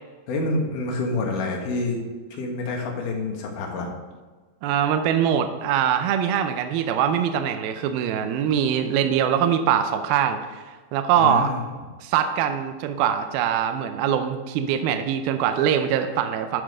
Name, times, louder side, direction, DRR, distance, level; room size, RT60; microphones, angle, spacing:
voice 1, 0.3-2.0 2.3-3.9 11.2-11.6, left 2 dB, 60° left, 0 dB, 2.6 m, -27 dB
voice 2, 4.6-10.6 10.9-11.5 12.0-16.6, right 9 dB, 80° right, 8 dB, 2.2 m, -23 dB
11.0 x 6.0 x 5.0 m, 1.4 s
omnidirectional pair, 4.8 m